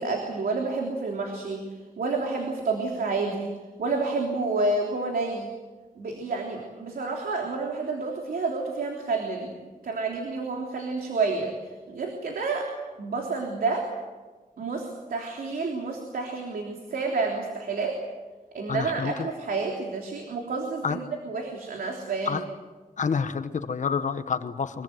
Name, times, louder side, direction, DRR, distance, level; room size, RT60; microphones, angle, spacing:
voice 1, 0.0-1.6 2.0-3.5 3.8-5.5 6.0-11.5 11.9-12.7 13.0-13.8 14.6-18.0 18.5-22.4, right 3 dB, 85° right, 1 dB, 3.4 m, -29 dB
voice 2, 18.7-19.3 20.8-21.0 22.3-22.4 23.0-24.8, left 6 dB, 55° left, 10 dB, 1.3 m, -28 dB
24.5 x 23.0 x 7.9 m, 1.3 s
wide cardioid pair, 150°, 15 cm